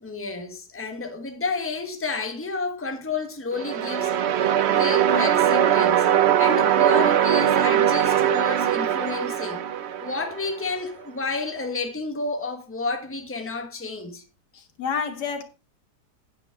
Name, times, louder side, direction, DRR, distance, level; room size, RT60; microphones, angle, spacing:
voice 1, 0.0-6.1 6.4-9.6 10.0-14.2, left 3 dB, 10° left, 1.2 m, -31 dB
sound 1, 3.5-10.6, right 10 dB, 55° right, 0.8 m, -21 dB
voice 2, 14.5-15.4, left 6 dB, 80° left, 1.9 m, -29 dB
8.9 x 8.4 x 4.6 m
omnidirectional pair, 1.7 m